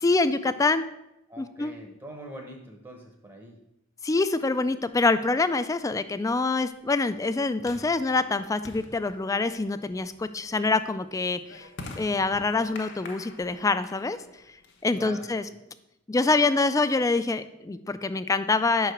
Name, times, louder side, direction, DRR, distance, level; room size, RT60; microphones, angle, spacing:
voice 1, 0.0-0.8 1.4-1.8 4.0-11.7 12.0-14.2 14.8-15.4 16.1-18.9, left 3 dB, 15° left, 12 dB, 0.3 m, -25 dB
voice 2, 1.3-3.6 14.9-15.6, right 1 dB, 20° right, 2 dB, 0.8 m, -43 dB
sound 1, 5.0-15.3, left 2 dB, 60° left, 1.0 m, -47 dB
5.8 x 4.7 x 6.4 m, 0.87 s
head